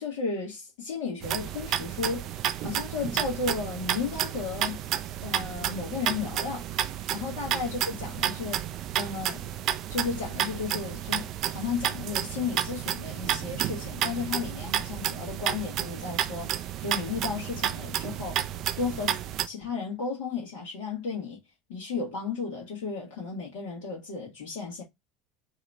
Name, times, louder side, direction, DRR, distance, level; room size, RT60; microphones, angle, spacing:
voice 1, 0.0-4.8 5.2-6.7 7.1-8.6 9.0-9.5 9.9-18.4 18.8-19.2 19.5-21.4 21.7-24.8, left 5 dB, 60° left, 1.7 m, -34 dB
sound 1, 1.2-19.5, right 11 dB, 45° right, 0.5 m, -31 dB
4.8 x 2.9 x 3.3 m
figure-of-eight pair, 70°, 0 cm